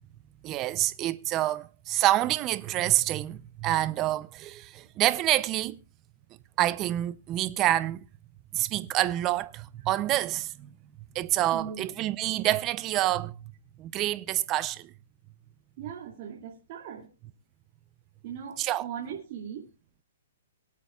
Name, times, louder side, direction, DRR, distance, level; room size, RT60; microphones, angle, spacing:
voice 1, 0.4-5.8 6.6-8.0 8.5-10.7 11.1-13.5 13.8-14.9 18.6-18.9, right 14 dB, 25° right, 0.5 m, -27 dB
voice 2, 11.5-11.9 15.8-17.1 18.2-19.7, right 8 dB, 40° right, 2.5 m, -39 dB
24.0 x 8.5 x 2.3 m
hypercardioid pair, 160°, 0 cm